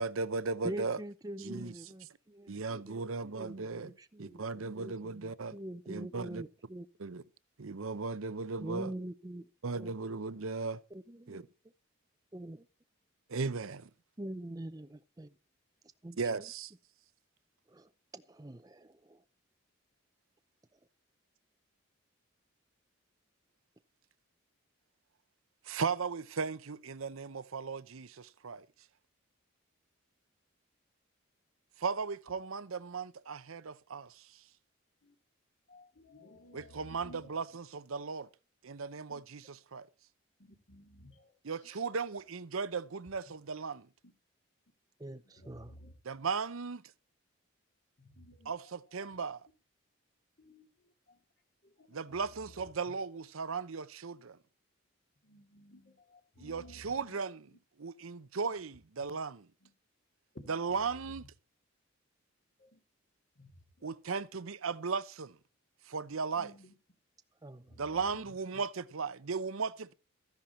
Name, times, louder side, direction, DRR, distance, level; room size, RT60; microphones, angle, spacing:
voice 1, 0.0-1.0 1.4-1.7 2.5-3.9 4.2-5.6 5.9-6.4 7.0-7.2 7.6-8.9 9.6-10.8 11.3-11.5 13.3-13.8 16.2-16.7 25.7-28.7 31.8-34.3 36.5-38.3 38.6-39.9 41.4-43.9 46.0-46.8 48.5-49.4 51.9-54.4 56.4-57.4 57.8-59.5 60.5-61.2 63.8-65.4 65.9-66.5 67.8-69.9, right 4 dB, 80° right, 0.7 m, -36 dB
voice 2, 0.6-6.9 8.6-9.5 9.8-9.9 10.9-11.4 12.3-12.7 14.2-15.3 16.0-16.5 17.7-19.2 45.0-45.8 67.4-67.8, right 1 dB, 15° right, 0.5 m, -44 dB
voice 3, 35.7-37.3 39.1-39.2 40.4-41.3 41.6-41.8 44.0-44.1 45.3-45.9 48.0-48.7 49.1-49.2 50.4-51.2 51.6-52.7 55.2-57.6 58.5-58.6 59.6-59.7 60.3-61.3 62.6-62.8 63.4-64.4 66.4-66.7 67.7-68.3, left 1 dB, 60° left, 2.4 m, -56 dB
14.5 x 10.5 x 4.3 m
head